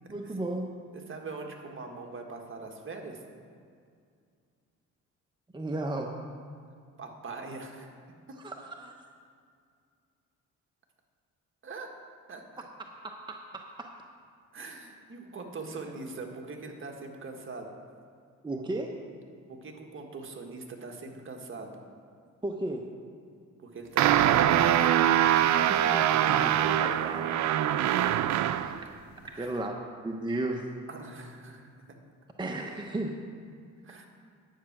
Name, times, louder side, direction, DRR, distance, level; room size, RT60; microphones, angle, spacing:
voice 1, 0.1-0.7 5.5-6.1 8.4-8.9 13.0-13.9 18.4-18.9 22.4-22.9 25.7-27.5 28.3-28.8 29.4-29.8 30.0-30.7 32.4-33.2, right 2 dB, 15° right, 2 dB, 0.8 m, -35 dB
voice 2, 0.9-3.2 7.0-7.9 11.6-11.9 12.3-12.7 14.5-17.7 19.5-21.7 23.6-25.3 29.2-29.5 30.9-31.7 33.8-34.1, right 3 dB, 40° right, 2 dB, 1.6 m, -42 dB
sound 1, 24.0-28.8, right 11 dB, 70° right, 0.5 m, -23 dB
10.0 x 8.5 x 6.0 m, 2.3 s
cardioid pair, 90°, 30 cm